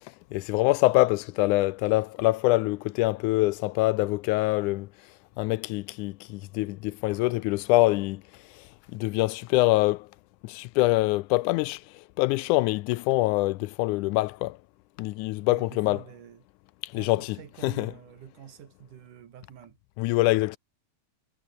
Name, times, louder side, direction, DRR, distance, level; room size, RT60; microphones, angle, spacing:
voice 1, 0.3-4.9 5.4-8.2 8.5-10.1 10.4-14.6 15.0-16.0 16.8-17.4 17.6-17.9 20.0-20.6, left 20 dB, 80° left, 2.0 m, -25 dB
voice 2, 15.5-16.5 16.9-19.8, right 9 dB, 75° right, 3.5 m, -47 dB
omnidirectional pair, 3.7 m